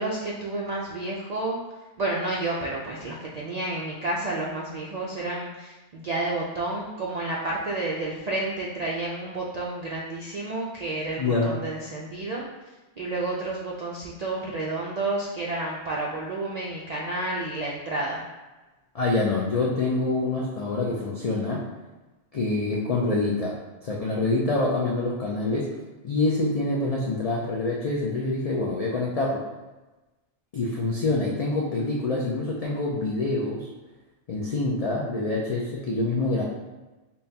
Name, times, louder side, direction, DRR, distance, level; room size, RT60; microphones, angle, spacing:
voice 1, 0.0-1.6 2.0-12.4 13.0-18.2, right 2 dB, 65° right, -4 dB, 0.4 m, -30 dB
voice 2, 11.2-11.5 18.9-21.6 22.3-23.5 23.8-25.7 26.0-29.4 30.5-33.6 34.3-36.4, left 2 dB, 65° left, -3 dB, 0.3 m, -26 dB
5.4 x 2.2 x 2.7 m, 1.1 s
omnidirectional pair, 1.2 m